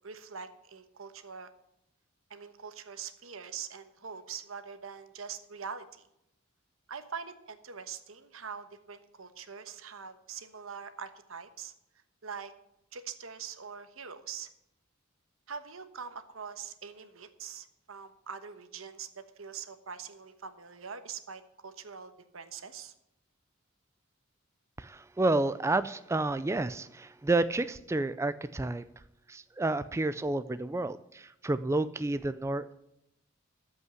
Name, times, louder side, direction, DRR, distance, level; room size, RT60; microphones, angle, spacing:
voice 1, 0.0-1.5 2.3-6.1 6.9-11.7 12.2-12.5 12.9-14.5 15.5-22.9, right 6 dB, 85° right, 10 dB, 1.2 m, -43 dB
voice 2, 24.8-28.9 29.3-32.7, right 2 dB, 15° right, 13 dB, 0.3 m, -30 dB
14.0 x 5.6 x 7.9 m, 0.84 s
head